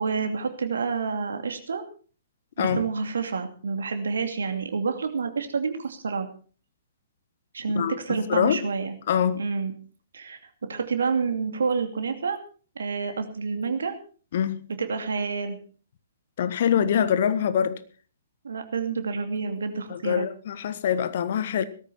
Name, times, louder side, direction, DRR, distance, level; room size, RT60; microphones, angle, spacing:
voice 1, 0.0-1.8 2.6-6.3 7.5-8.9 9.3-9.7 10.1-10.4 10.7-12.4 12.8-14.0 14.8-15.6 18.4-20.3, right 5 dB, 70° right, 2.7 m, -28 dB
voice 2, 9.1-9.4 14.3-14.7 16.4-17.8 19.9-21.6, left 8 dB, 50° left, 1.4 m, -24 dB
17.5 x 14.0 x 4.3 m
figure-of-eight pair, 120°, 0 cm